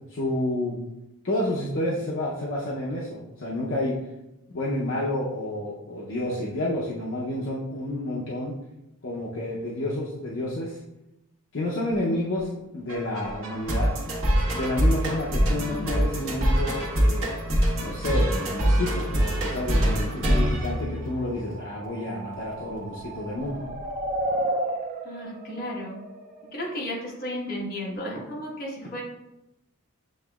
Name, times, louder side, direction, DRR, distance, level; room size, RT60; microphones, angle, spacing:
voice 1, 0.1-0.8 1.2-4.0 4.5-8.5 9.0-10.8 11.5-13.9 14.5-17.3 17.8-23.7, left 1 dB, 60° left, -6 dB, 0.7 m, -30 dB
sound 1, 12.9-21.5, equal, 65° right, 1.3 m, -24 dB
voice 2, 15.5-15.9 25.0-26.0 26.5-29.0, equal, 45° left, -4 dB, 1.3 m, -34 dB
sound 2, 21.1-26.9, right 1 dB, 40° right, 0.4 m, -33 dB
7.4 x 2.9 x 2.3 m, 0.92 s
head